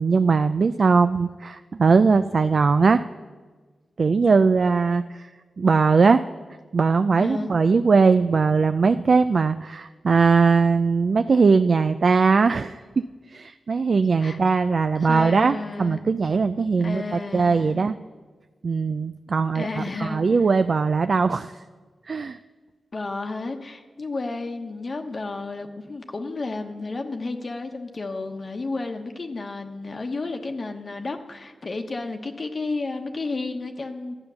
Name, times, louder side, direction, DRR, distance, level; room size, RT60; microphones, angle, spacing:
voice 1, 0.0-3.0 4.0-5.3 5.6-6.2 6.7-18.0 18.6-21.5 22.1-22.4, right 4 dB, 55° right, 10 dB, 0.4 m, -20 dB
voice 2, 7.2-7.5 14.2-14.4 14.9-16.0 16.8-17.9 19.5-20.2 22.9-34.2, left 3 dB, 45° left, 4 dB, 1.0 m, -32 dB
12.0 x 8.7 x 6.9 m, 1.4 s
cardioid pair, 75°, 0 cm